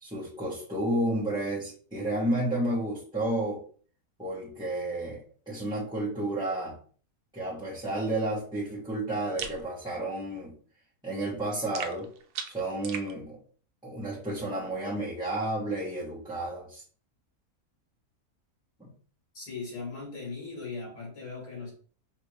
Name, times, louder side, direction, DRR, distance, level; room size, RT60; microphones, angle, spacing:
voice 1, 0.0-3.6 4.2-5.2 5.5-6.8 7.3-10.5 11.0-12.1 12.5-13.4 13.8-16.8 18.8-18.9, right 1 dB, 5° right, -9 dB, 1.0 m, -31 dB
sound 1, 9.4-9.6 11.7-13.1, right 7 dB, 80° right, 1.1 m, -37 dB
voice 2, 19.3-21.7, left 4 dB, 85° left, -5 dB, 3.0 m, -38 dB
4.9 x 2.7 x 3.2 m, 0.44 s
omnidirectional pair, 1.6 m